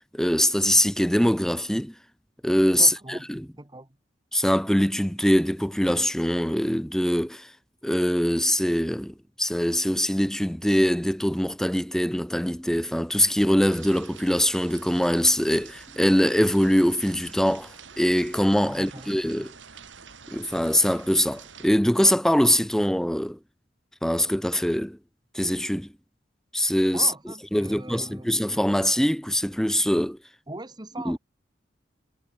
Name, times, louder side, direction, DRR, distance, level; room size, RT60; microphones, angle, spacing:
voice 1, 0.1-1.9 2.4-3.4 4.3-7.5 7.8-19.5 20.3-23.4 24.0-25.0 25.3-25.9 26.5-27.1 27.5-30.2 31.1-31.2, equal, 5° left, 0.8 m, -23 dB
voice 2, 2.7-4.0 18.7-19.4 26.9-28.3 30.5-31.2, right 2 dB, 20° right, 2.1 m, -41 dB
sound 1, 13.6-21.7, right 6 dB, 75° right, 3.8 m, -47 dB
head